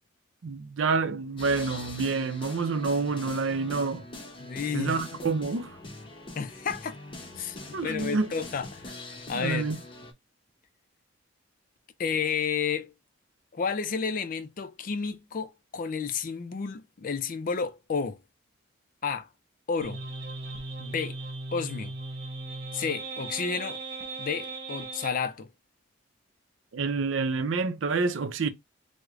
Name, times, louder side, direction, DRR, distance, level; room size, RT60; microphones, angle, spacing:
voice 1, 0.4-4.1 4.7-5.8 7.7-8.3 9.3-9.8 26.7-28.5, right 4 dB, 75° right, 0.5 m, -28 dB
sound 1, 1.4-10.1, left 2 dB, 25° left, 0.7 m, -43 dB
voice 2, 4.4-5.0 6.4-7.0 7.4-9.0 9.3-9.7 12.0-12.9 13.5-18.2 19.0-19.3 19.7-20.0 20.8-21.2 21.5-21.9 22.7-23.8 24.2-25.5, left 5 dB, 45° left, 0.4 m, -31 dB
sound 2, 19.8-25.2, right 3 dB, 55° right, 1.0 m, -38 dB
4.6 x 2.1 x 2.4 m
head